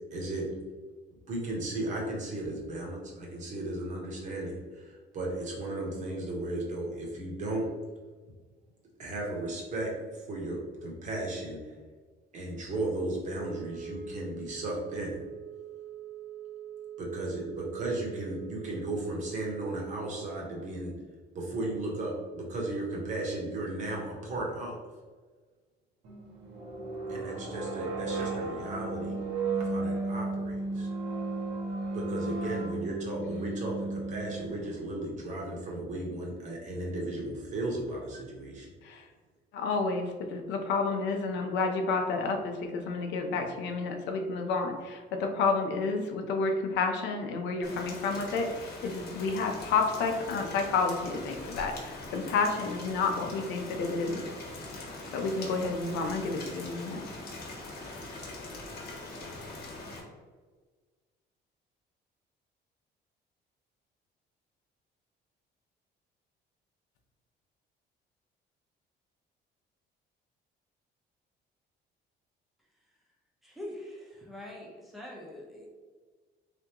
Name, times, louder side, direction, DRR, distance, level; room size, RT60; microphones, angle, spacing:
voice 1, 0.1-0.5 1.3-7.7 9.0-11.7 12.3-15.2 17.0-20.9 21.3-24.8 27.1-29.2 29.6-30.9 31.9-38.7, right 2 dB, 40° right, -2 dB, 1.0 m, -35 dB
Wind instrument woodwind instrument, 13.3-20.4, right 8 dB, 30° left, 1.0 m, -44 dB
sound 1, 26.0-34.8, right 3 dB, 75° right, 1.0 m, -34 dB
voice 2, 39.5-54.2 55.1-57.0, left 4 dB, 80° left, 4 dB, 0.7 m, -30 dB
Rain, 47.6-60.0, left 2 dB, 60° left, 1.0 m, -42 dB
voice 3, 73.4-75.7, left 1 dB, ahead, -3 dB, 0.7 m, -43 dB
3.7 x 3.4 x 2.9 m, 1.4 s
cardioid pair, 175°, 18 cm